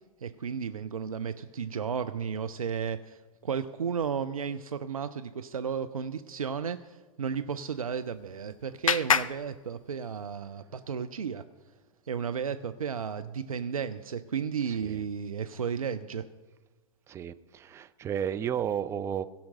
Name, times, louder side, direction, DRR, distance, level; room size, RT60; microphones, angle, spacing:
voice 1, 0.2-11.4 12.1-16.3, right 7 dB, 80° right, 10 dB, 0.5 m, -33 dB
Clapping, 7.7-10.4, left 7 dB, 70° left, 0.5 m, -31 dB
voice 2, 14.7-15.0 17.1-19.3, right 9 dB, 15° right, 11 dB, 0.4 m, -33 dB
16.0 x 5.8 x 6.3 m, 1.3 s
figure-of-eight pair, 105°, 18 cm